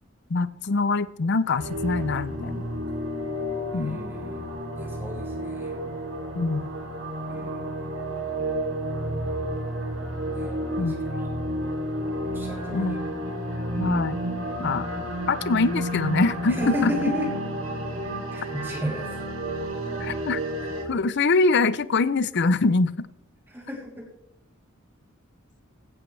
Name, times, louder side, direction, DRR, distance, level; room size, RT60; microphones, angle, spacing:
voice 1, 0.3-2.6 3.7-4.0 6.3-6.7 10.8-10.9 12.7-13.0 13.8-14.2 14.6-14.9 15.3-16.9 20.0-20.4 20.9-23.1, left 3 dB, 55° left, 17 dB, 0.6 m, -24 dB
sound 1, 1.6-20.8, right 1 dB, 80° right, 3.3 m, -31 dB
voice 2, 3.7-4.5 4.8-5.8 7.3-7.7 10.3-11.3 12.3-13.0 16.5-17.3 18.3-19.1 23.5-24.1, left 1 dB, 10° right, -2 dB, 3.2 m, -33 dB
16.5 x 12.0 x 3.3 m, 0.82 s
head